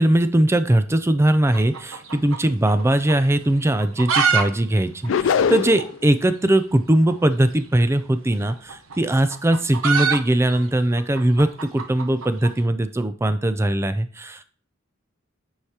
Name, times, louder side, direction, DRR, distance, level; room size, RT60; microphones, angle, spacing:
voice 1, 0.0-14.4, right 1 dB, 15° right, 11 dB, 0.4 m, -20 dB
sound 1, 1.5-2.8 3.1-3.2 3.7-4.4 4.7-4.8 5.0-5.1 5.7-5.8 7.0-7.2 8.3-12.5, right 5 dB, 90° right, 1.0 m, -24 dB
sound 2, 5.1-6.0, left 7 dB, 65° left, 0.4 m, -21 dB
9.8 x 4.8 x 2.9 m, 0.42 s
head